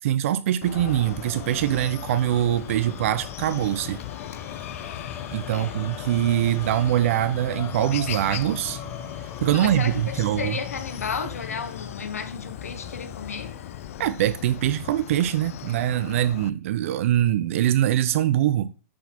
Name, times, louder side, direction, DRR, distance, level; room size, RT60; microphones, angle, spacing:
voice 1, 0.0-4.0 5.3-8.8 9.4-10.6 14.0-18.7, right 12 dB, 65° right, 0.5 m, -23 dB
Chicken rooster, 0.6-16.5, left 12 dB, 70° left, 0.4 m, -38 dB
sound 1, 0.7-14.5, left 7 dB, 30° left, 2.4 m, -40 dB
voice 2, 9.5-13.5, left 5 dB, 90° left, 0.9 m, -33 dB
6.0 x 6.0 x 2.9 m
hypercardioid pair, 110°, 8 cm